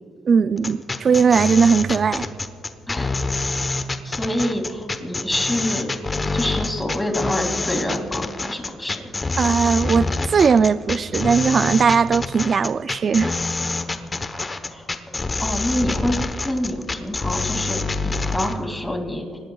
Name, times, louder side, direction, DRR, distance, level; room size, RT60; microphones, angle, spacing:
voice 1, 0.2-2.3 9.4-13.3, right 6 dB, 45° right, 0.3 m, -18 dB
sound 1, 0.6-18.5, left 3 dB, 25° left, 1.0 m, -26 dB
voice 2, 2.9-3.2 3.6-9.1 14.3-14.9 15.4-19.3, left 1 dB, 10° left, 2.5 m, -27 dB
25.5 x 19.0 x 2.3 m
cardioid pair, 90°, 0 cm